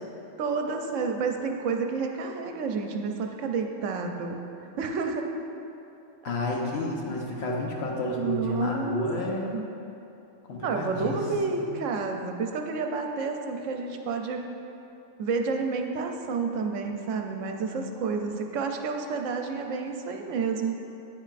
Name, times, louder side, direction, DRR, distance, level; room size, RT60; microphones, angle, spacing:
voice 1, 0.4-4.4 4.8-5.3 8.1-9.0 9.5-9.7 10.6-14.5 15.2-20.7, right 4 dB, 75° right, 4 dB, 1.0 m, -30 dB
voice 2, 6.2-9.6 10.5-11.2 11.5-11.7, left 2 dB, 55° left, -1 dB, 1.2 m, -30 dB
9.4 x 7.1 x 2.5 m, 2.8 s
omnidirectional pair, 1.4 m